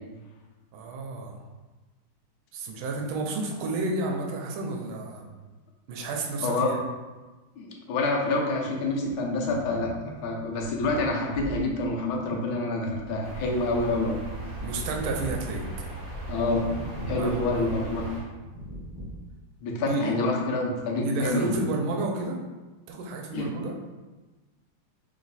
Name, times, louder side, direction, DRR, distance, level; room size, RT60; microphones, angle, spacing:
voice 1, 0.7-1.4 2.5-5.3 5.9-6.8 14.6-15.7 17.1-17.7 19.8-20.2 21.0-22.4 22.9-23.7, right 2 dB, 80° right, 1 dB, 1.4 m, -31 dB
voice 2, 7.6-14.2 16.3-16.7 17.1-18.1 19.6-21.5 23.3-23.5, left 2 dB, 75° left, 0 dB, 1.5 m, -27 dB
sound 1, 8.8-13.8 14.1-16.0 16.4-17.3 17.6-17.7 18.4-19.3, equal, 20° right, 0.7 m, -41 dB
sound 2, 13.2-18.2, right 2 dB, 55° right, 1.1 m, -37 dB
3.4 x 3.1 x 4.0 m, 1.2 s
omnidirectional pair, 2.3 m